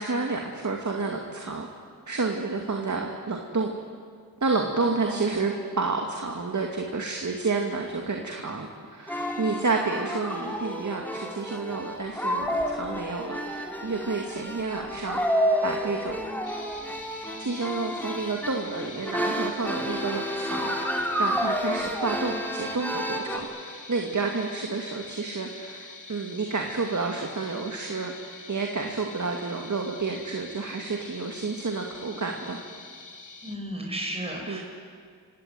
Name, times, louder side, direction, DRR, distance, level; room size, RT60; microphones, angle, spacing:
voice 1, 0.0-1.7 2.1-3.7 4.4-16.2 17.4-32.6 34.5-34.6, right 4 dB, 45° right, 2 dB, 2.5 m, -30 dB
voice 2, 5.0-5.4 33.4-34.6, equal, 15° right, 0 dB, 5.9 m, -34 dB
sound 1, 9.1-23.4, equal, 5° left, 3.8 m, -30 dB
sound 2, 16.4-33.6, left 3 dB, 50° left, 2.5 m, -45 dB
27.5 x 17.0 x 9.5 m, 2.1 s
cardioid pair, 60°, 39 cm